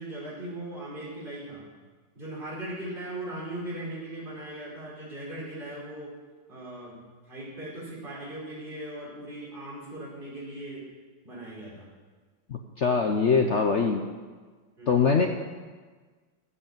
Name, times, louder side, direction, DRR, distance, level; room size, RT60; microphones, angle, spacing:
voice 1, 0.0-1.6 2.1-6.1 6.5-10.8 11.2-11.9 14.8-15.2, right 1 dB, 25° right, -6 dB, 4.9 m, -39 dB
voice 2, 12.5-14.0 14.9-15.3, left 5 dB, 65° left, 4 dB, 0.7 m, -23 dB
15.0 x 8.1 x 7.3 m, 1.4 s
omnidirectional pair, 2.2 m